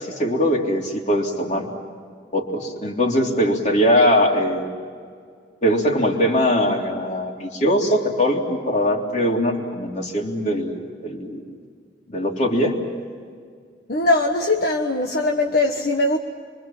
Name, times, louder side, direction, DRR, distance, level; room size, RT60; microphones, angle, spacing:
voice 1, 0.0-1.7 2.3-4.7 5.6-11.4 12.1-12.8, equal, 40° left, 1 dB, 3.4 m, -21 dB
voice 2, 13.9-16.2, left 2 dB, 55° left, 2 dB, 1.4 m, -20 dB
27.0 x 24.5 x 7.5 m, 2.1 s
head